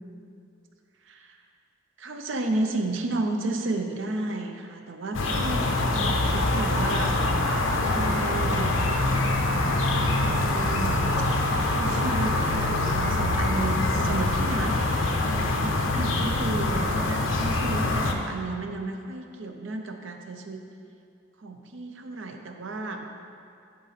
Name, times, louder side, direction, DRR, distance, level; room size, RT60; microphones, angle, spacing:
voice 1, 1.0-1.4 2.0-7.2 7.8-8.8 10.1-11.3 11.6-20.6 21.4-23.0, right 2 dB, 65° right, 5 dB, 0.6 m, -32 dB
sound 1, 5.1-18.1, left 2 dB, 70° left, 0.7 m, -24 dB
11.5 x 3.9 x 4.1 m, 2.4 s
head